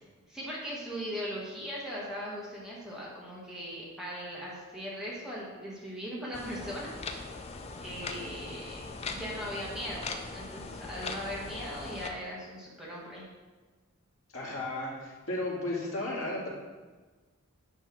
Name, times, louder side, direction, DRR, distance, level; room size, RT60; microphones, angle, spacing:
voice 1, 0.3-7.0 7.8-8.8 9.1-10.0 10.3-13.3, equal, 5° right, -6 dB, 1.5 m, -39 dB
sound 1, 6.3-12.1, left 3 dB, 30° left, 0.5 m, -40 dB
voice 2, 14.3-16.5, left 2 dB, 75° left, -5 dB, 2.2 m, -34 dB
9.3 x 3.5 x 6.0 m, 1.3 s
head